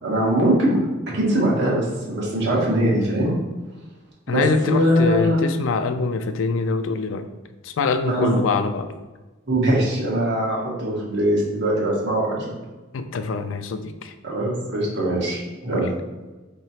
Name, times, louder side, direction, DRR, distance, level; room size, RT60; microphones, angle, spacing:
voice 1, 0.0-0.8 1.1-3.3 4.3-5.4 8.0-8.4 9.5-12.5 14.2-16.0, right 1 dB, 60° right, -4 dB, 1.3 m, -21 dB
voice 2, 4.3-7.3 7.6-8.9 12.9-14.1 15.7-15.8, left 4 dB, 70° left, 9 dB, 0.4 m, -24 dB
3.8 x 3.0 x 4.2 m, 1.2 s
head